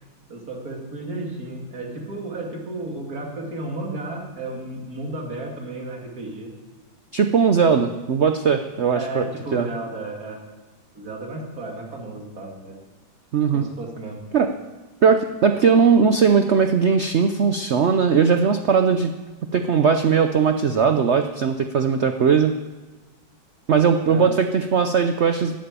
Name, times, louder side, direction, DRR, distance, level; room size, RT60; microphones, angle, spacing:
voice 1, 0.3-6.5 8.9-10.4 10.9-12.8 13.5-14.2 20.7-20.8 24.1-24.3, right 2 dB, 50° right, 0 dB, 2.9 m, -33 dB
voice 2, 7.1-9.2 9.5-9.7 13.3-13.6 14.3-14.5 15.0-19.1 19.5-22.5 23.7-25.5, right 6 dB, 75° right, 7 dB, 0.6 m, -19 dB
13.5 x 9.0 x 8.9 m, 1.2 s
omnidirectional pair, 2.0 m